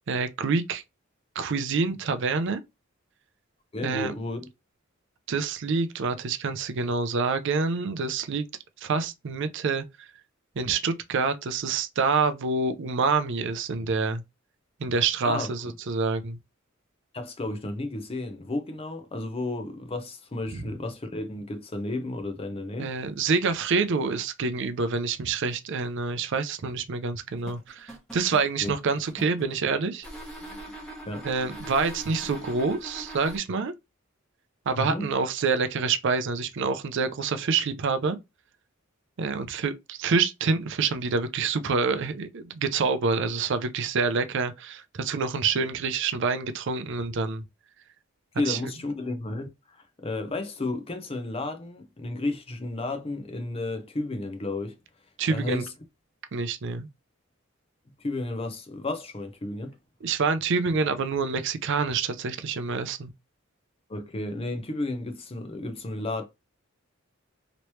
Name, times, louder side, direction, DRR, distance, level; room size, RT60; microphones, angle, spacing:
voice 1, 0.1-0.8 1.4-2.6 3.8-4.1 5.3-8.4 8.8-9.8 10.6-14.2 14.8-16.4 22.8-30.1 31.2-33.7 34.7-38.2 39.2-47.4 48.5-48.6 55.2-55.6 56.3-56.9 60.0-63.1, right 4 dB, 60° right, 0.5 m, -27 dB
voice 2, 3.7-4.5 15.2-15.5 17.1-22.9 28.6-28.7 31.1-31.3 34.7-35.1 48.4-54.8 55.3-55.7 58.0-59.8 63.9-66.2, left 2 dB, 30° left, 0.6 m, -32 dB
sound 1, 27.4-29.5 30.0-33.4, right 1 dB, 5° left, 1.1 m, -41 dB
3.1 x 3.0 x 3.0 m
head